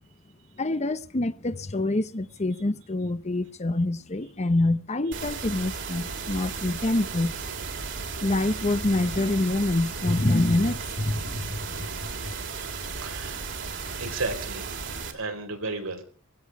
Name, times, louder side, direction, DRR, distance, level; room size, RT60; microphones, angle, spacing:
voice 1, 0.6-7.3 8.2-11.9 12.3-12.4, left 2 dB, 35° left, 0.9 m, -26 dB
sound 1, 5.1-15.1, right 4 dB, 60° right, 3.0 m, -35 dB
voice 2, 13.0-13.5 14.0-14.6 15.1-16.0, right 3 dB, 90° right, 4.2 m, -33 dB
17.5 x 16.0 x 4.8 m
head